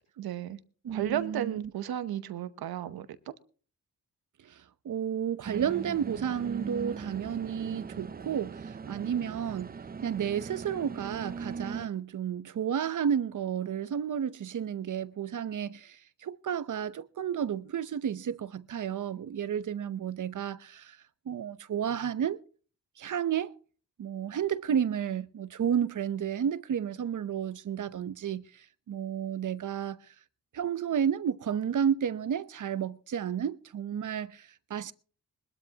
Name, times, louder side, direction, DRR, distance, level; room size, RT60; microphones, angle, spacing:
voice 1, 0.2-0.6 0.9-3.3, right 11 dB, 85° right, 0.9 m, -34 dB
voice 2, 0.8-1.6 4.4-9.7 10.0-21.0 21.3-22.4 23.0-23.5 24.0-30.0 30.5-34.9, right 8 dB, 55° right, 0.8 m, -32 dB
sound 1, 5.4-11.9, right 5 dB, 25° right, 0.5 m, -40 dB
21.0 x 13.0 x 2.9 m
cardioid pair, 65°, 36 cm